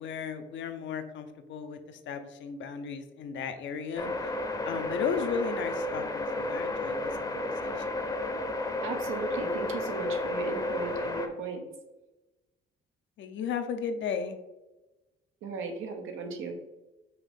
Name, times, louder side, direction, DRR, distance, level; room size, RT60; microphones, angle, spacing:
voice 1, 0.0-4.1 4.6-8.1 13.2-14.4, left 6 dB, 70° left, 8 dB, 0.6 m, -35 dB
sound 1, 4.0-11.3, left 2 dB, 20° left, 0.6 m, -32 dB
voice 2, 8.8-11.6 15.4-16.6, right 4 dB, 90° right, 4 dB, 0.8 m, -36 dB
5.6 x 2.7 x 3.4 m, 1.1 s
cardioid pair, 90°, 20 cm